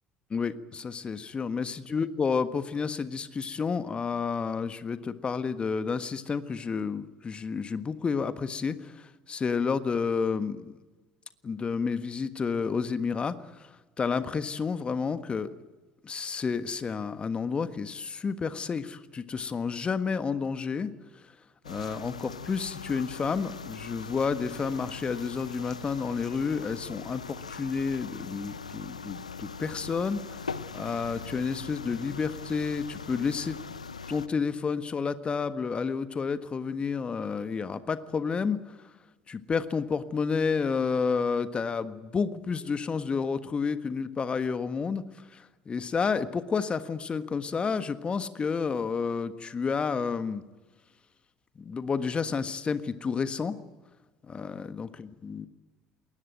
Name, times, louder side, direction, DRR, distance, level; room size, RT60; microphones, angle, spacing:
voice 1, 0.3-8.9 9.3-10.8 11.4-13.4 14.0-15.5 16.0-20.9 21.6-30.4 30.7-33.6 34.1-38.7 39.3-45.0 45.3-50.4 51.6-53.6 54.2-55.5, left 5 dB, 30° left, 11 dB, 1.5 m, -30 dB
sound 1, 21.6-34.3, left 5 dB, 85° left, 0.6 m, -41 dB
21.0 x 19.0 x 9.1 m, 1.2 s
figure-of-eight pair, 60°, 4 cm